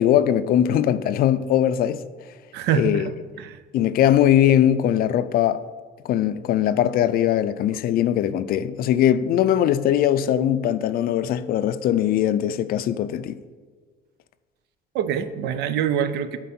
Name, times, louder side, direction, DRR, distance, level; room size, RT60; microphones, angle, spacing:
voice 1, 0.0-2.0 2.7-3.1 3.7-5.6 6.0-13.4, left 11 dB, 60° left, 0.4 m, -20 dB
voice 2, 2.5-3.6 14.9-16.4, right 8 dB, 85° right, 0.5 m, -25 dB
7.6 x 4.5 x 4.3 m
cardioid pair, 110°, 17 cm